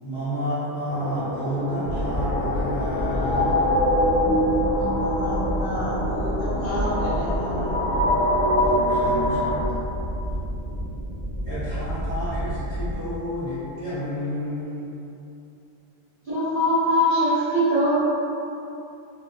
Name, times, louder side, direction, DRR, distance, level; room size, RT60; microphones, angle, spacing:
voice 1, 0.0-4.0 8.8-9.4 11.4-14.9, equal, 40° left, -14 dB, 0.5 m, -31 dB
sound 1, 0.9-9.6, left 1 dB, 85° left, 1.1 m, -24 dB
sound 2, 1.8-13.0, equal, 20° right, 0.8 m, -30 dB
voice 2, 4.9-7.8 9.0-9.4, left 1 dB, 65° left, -9 dB, 0.9 m, -31 dB
voice 3, 16.2-18.0, equal, 55° right, -12 dB, 0.6 m, -21 dB
2.4 x 2.2 x 2.5 m, 2.7 s
omnidirectional pair, 1.5 m